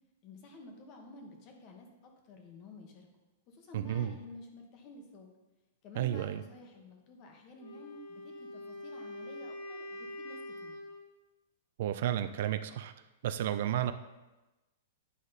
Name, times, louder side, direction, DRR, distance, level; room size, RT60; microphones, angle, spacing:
voice 1, 0.2-3.1 3.5-5.3 5.8-10.8, left 2 dB, 30° left, 3 dB, 1.2 m, -51 dB
voice 2, 3.7-4.2 6.0-6.4 11.8-12.9 13.2-13.9, right 11 dB, 55° right, 11 dB, 0.4 m, -32 dB
Wind instrument woodwind instrument, 7.6-11.1, left 1 dB, 65° left, 1.2 m, -44 dB
9.8 x 5.1 x 4.0 m, 1.1 s
supercardioid pair, 165°, 0 cm